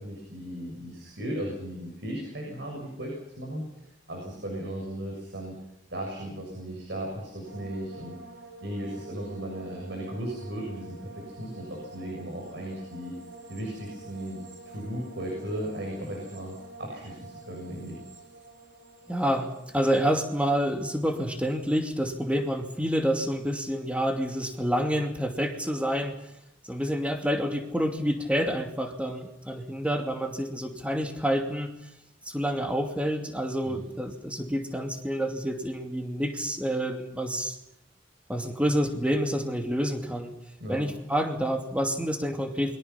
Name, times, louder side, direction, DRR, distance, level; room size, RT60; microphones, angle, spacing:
voice 1, 0.0-3.6 4.1-5.6 5.9-8.1 8.6-13.1 13.5-18.0 33.6-33.9 40.6-40.8, right 1 dB, 65° right, 0 dB, 7.2 m, -36 dB
sound 1, 7.5-22.7 22.9-23.6, right 3 dB, 85° right, 6.4 m, -48 dB
voice 2, 19.1-26.2 26.7-31.7 32.3-37.6 38.3-40.3 40.7-42.8, equal, 5° right, 4 dB, 2.5 m, -28 dB
28.5 x 23.0 x 5.8 m, 0.82 s
head